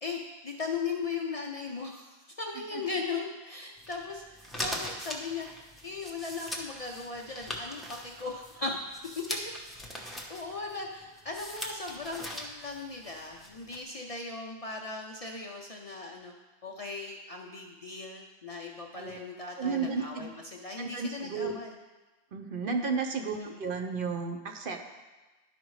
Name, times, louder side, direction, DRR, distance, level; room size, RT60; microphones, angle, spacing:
voice 1, 0.0-8.8 9.3-9.4 10.1-16.3 16.6-21.7 23.3-23.6, left 4 dB, 45° left, 0 dB, 0.5 m, -38 dB
sound 1, 3.8-13.8, equal, ahead, 0.7 m, -41 dB
voice 2, 19.6-20.3 20.8-21.6 22.3-24.8, right 5 dB, 60° right, 3 dB, 0.8 m, -33 dB
11.5 x 5.0 x 3.1 m, 1.2 s
omnidirectional pair, 1.1 m